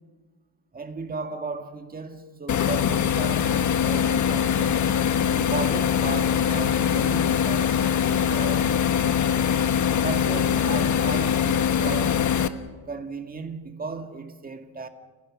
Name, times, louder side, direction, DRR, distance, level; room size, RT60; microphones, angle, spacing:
voice 1, 0.7-4.9 5.3-8.9 10.0-12.2 12.9-14.9, right 4 dB, 25° right, 1.9 m, -35 dB
sound 1, 2.5-12.5, left 8 dB, 50° left, 1.2 m, -22 dB
29.5 x 16.0 x 6.3 m
cardioid pair, 110°, 38 cm